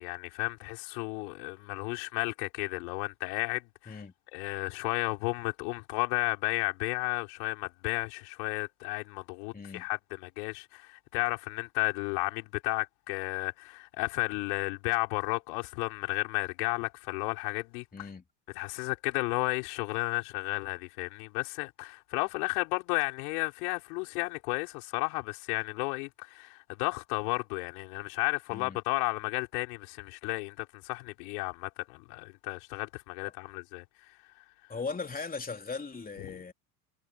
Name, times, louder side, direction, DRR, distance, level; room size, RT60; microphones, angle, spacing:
voice 1, 0.0-4.0 4.3-18.1 18.5-34.1 36.2-36.4, left 30 dB, 70° left, 5.1 m, -33 dB
voice 2, 9.5-9.9 17.9-18.2 28.5-28.8 34.7-36.5, left 4 dB, 20° left, 3.4 m, -38 dB
hypercardioid pair, 80°, 46 cm